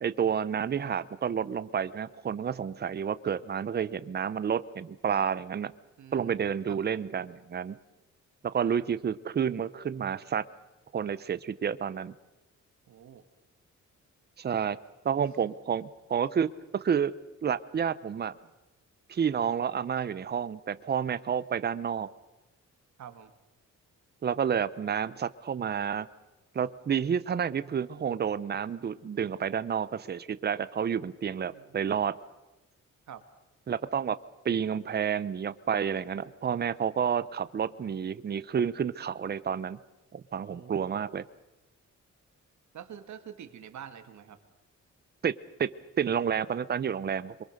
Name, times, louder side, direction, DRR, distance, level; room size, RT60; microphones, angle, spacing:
voice 1, 0.0-5.7 6.1-7.8 8.5-10.4 10.9-12.1 14.4-14.8 15.0-17.1 17.4-18.3 19.1-22.1 24.2-26.1 26.5-32.2 33.7-34.2 34.4-39.8 40.1-41.2 45.2-45.3 45.6-45.7 46.0-47.3, right 7 dB, 35° right, 15 dB, 0.7 m, -30 dB
voice 2, 6.0-6.3 6.7-6.8 8.6-8.9 12.9-13.2 23.0-23.3 31.5-32.0 33.1-33.2 40.5-41.0 42.7-44.4, right 9 dB, 70° right, 9 dB, 2.0 m, -46 dB
26.0 x 23.5 x 6.5 m, 1.0 s
wide cardioid pair, 165°, 30 cm